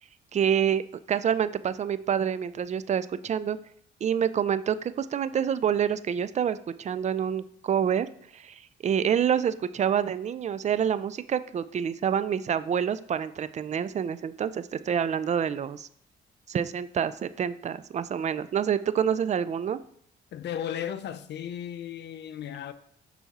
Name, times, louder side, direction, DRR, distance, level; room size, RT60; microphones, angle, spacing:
voice 1, 0.3-0.8 1.1-3.6 4.0-8.1 8.3-15.9 16.5-19.8, right 8 dB, 35° right, 0.4 m, -27 dB
voice 2, 20.3-22.7, left 9 dB, 60° left, 0.5 m, -35 dB
5.8 x 4.1 x 4.2 m
cardioid pair, 90°, 20 cm